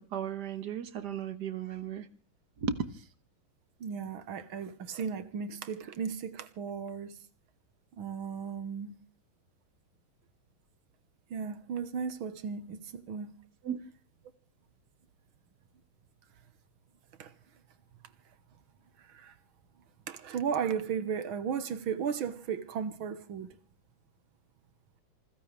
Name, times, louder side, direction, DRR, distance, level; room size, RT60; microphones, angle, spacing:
voice 1, 0.0-2.1 2.6-2.8 13.6-13.8, right 7 dB, 55° right, 1.7 m, -35 dB
voice 2, 3.8-7.2 7.9-8.9 11.3-13.3 17.2-17.3 19.0-19.4 20.1-23.6, right 7 dB, 70° right, 2.0 m, -35 dB
27.5 x 15.5 x 3.4 m
omnidirectional pair, 2.3 m